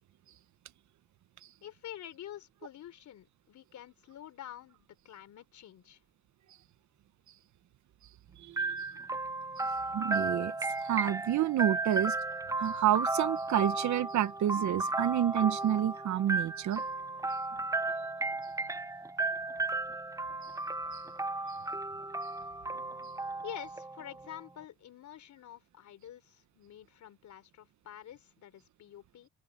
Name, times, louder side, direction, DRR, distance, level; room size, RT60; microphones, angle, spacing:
voice 1, 1.6-6.0 23.4-29.3, left 11 dB, 70° left, 3.7 m, -48 dB
voice 2, 8.4-8.8 9.6-9.7 9.9-10.5 10.8-12.2 12.6-16.8 20.9-21.0, right 11 dB, 70° right, 1.2 m, -29 dB
sound 1, 8.6-24.3, right 3 dB, 10° right, 0.7 m, -34 dB
open air
cardioid pair, 90°, 30 cm